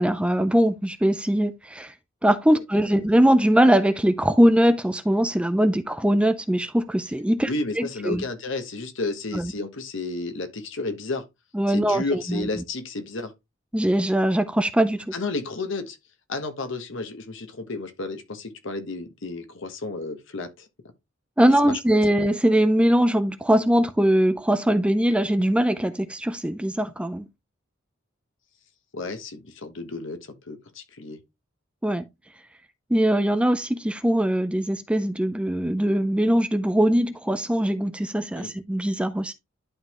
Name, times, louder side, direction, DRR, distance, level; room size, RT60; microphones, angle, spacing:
voice 1, 0.0-1.9 2.2-7.5 7.8-8.2 9.3-9.5 11.5-12.4 13.7-15.0 21.4-27.2 31.8-32.0 32.9-39.3, right 1 dB, 5° right, 0.4 m, -21 dB
voice 2, 7.4-11.2 11.7-13.3 15.1-16.0 16.3-20.7 21.6-21.8 28.9-30.2 30.5-31.2 38.3-38.5, left 3 dB, 65° left, 1.2 m, -32 dB
11.0 x 3.9 x 3.0 m
head